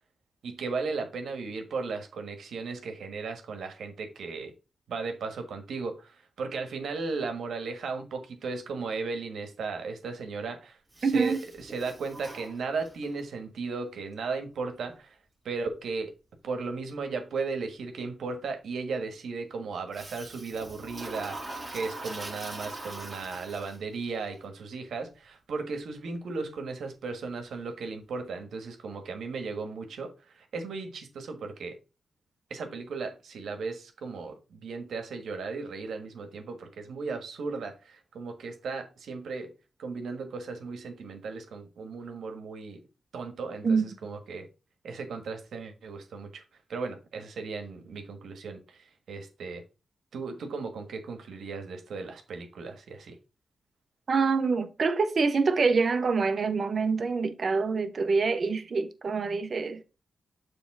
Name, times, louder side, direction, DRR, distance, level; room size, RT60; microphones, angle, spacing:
voice 1, 0.4-4.5 4.9-11.4 11.7-15.1 15.4-16.1 16.4-31.8 32.5-39.5 39.8-42.8 43.1-44.5 44.8-46.4 46.7-48.8 49.1-49.6 50.1-53.2, right 4 dB, 85° right, 1.4 m, -36 dB
Toilet flush, 10.9-13.2 19.9-24.1, right 2 dB, 20° right, 2.3 m, -42 dB
voice 2, 11.0-11.4 43.6-43.9 54.1-59.8, right 4 dB, 55° right, 0.9 m, -26 dB
6.9 x 3.4 x 4.7 m
cardioid pair, 80°, 0 cm